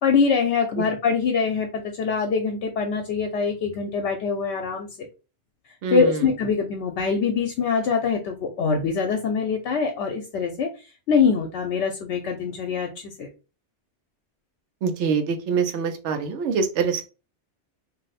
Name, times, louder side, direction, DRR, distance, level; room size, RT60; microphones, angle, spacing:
voice 1, 0.0-1.7 1.9-5.1 5.9-10.7 11.1-13.3, left 5 dB, 75° left, 3 dB, 0.9 m, -23 dB
voice 2, 5.8-6.3 14.8-17.0, right 5 dB, 75° right, 6 dB, 0.9 m, -25 dB
2.6 x 2.0 x 4.0 m, 0.31 s
omnidirectional pair, 1.2 m